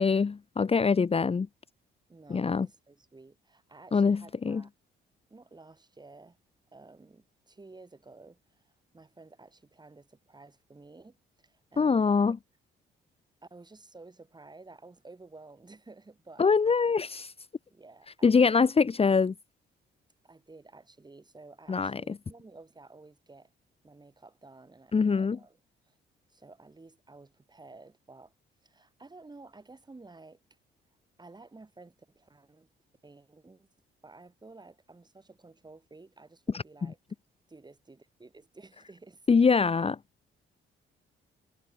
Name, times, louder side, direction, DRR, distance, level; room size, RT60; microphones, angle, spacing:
voice 1, 0.0-1.5 2.3-2.7 3.9-4.6 11.8-12.4 16.4-17.3 18.2-19.3 21.7-22.1 24.9-25.4 36.5-36.6 39.3-40.0, left 5 dB, 30° left, 1.2 m, -24 dB
voice 2, 2.1-4.7 5.3-6.4 6.7-12.4 13.4-16.9 17.7-18.7 20.2-23.5 23.8-25.6 25.8-25.9 26.3-28.3 28.6-30.4 31.2-32.7 33.0-33.7 34.0-37.0 37.5-39.3, right 3 dB, 20° right, 8.0 m, -53 dB
cardioid pair, 90°, 20 cm